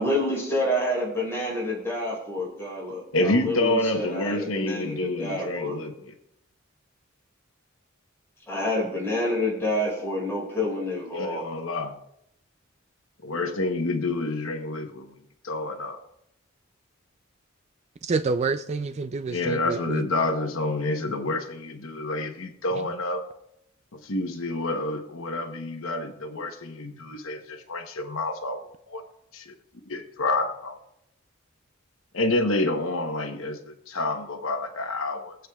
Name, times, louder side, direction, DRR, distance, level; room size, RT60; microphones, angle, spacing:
voice 1, 0.0-5.8 8.5-11.4, left 1 dB, 15° left, -4 dB, 5.2 m, -28 dB
voice 2, 3.1-6.1 11.1-11.9 13.2-15.1 15.4-16.0 19.3-23.3 23.9-29.0 29.3-29.4 29.9-30.8 32.1-35.3, left 2 dB, 90° left, 5 dB, 1.0 m, -28 dB
voice 3, 18.0-20.0 22.7-22.9, right 4 dB, 35° right, 9 dB, 0.4 m, -28 dB
22.5 x 8.0 x 2.4 m, 0.78 s
head